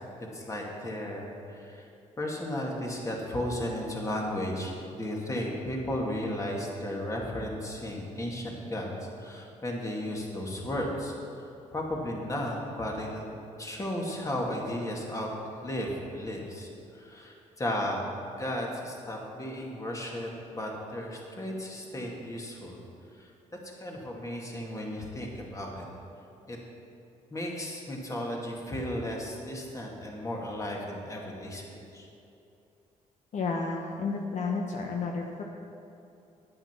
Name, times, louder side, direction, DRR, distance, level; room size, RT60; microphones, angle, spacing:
voice 1, 0.3-1.9 2.2-13.2 13.6-15.3 15.6-16.7 16.9-18.0 18.4-22.8 23.2-25.8 26.5-26.6 27.3-32.1, left 1 dB, 25° left, -1 dB, 2.2 m, -34 dB
voice 2, 33.3-35.4, left 4 dB, 65° left, 1 dB, 1.0 m, -31 dB
10.0 x 9.3 x 6.0 m, 2.7 s
cardioid pair, 95°, 13 cm